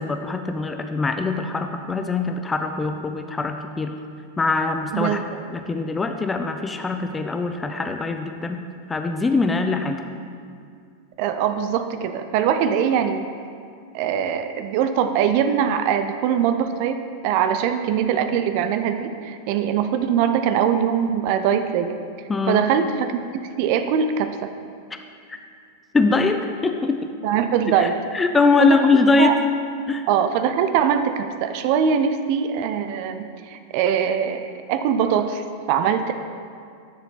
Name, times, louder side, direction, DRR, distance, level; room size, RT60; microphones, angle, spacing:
voice 1, 0.0-3.9 4.4-5.2 5.5-8.6 8.9-10.0 22.3-22.7 25.3-25.4 25.9-27.1 27.7-29.3 29.9-30.0, left 3 dB, 15° left, 6 dB, 0.4 m, -22 dB
voice 2, 11.2-13.3 13.9-17.0 17.2-22.0 22.5-23.1 23.6-24.5 27.2-28.0 28.6-28.8 29.2-29.3 30.1-36.1, right 8 dB, 45° right, 9 dB, 0.5 m, -22 dB
10.0 x 7.1 x 4.2 m, 2.3 s
figure-of-eight pair, 90°, 0 cm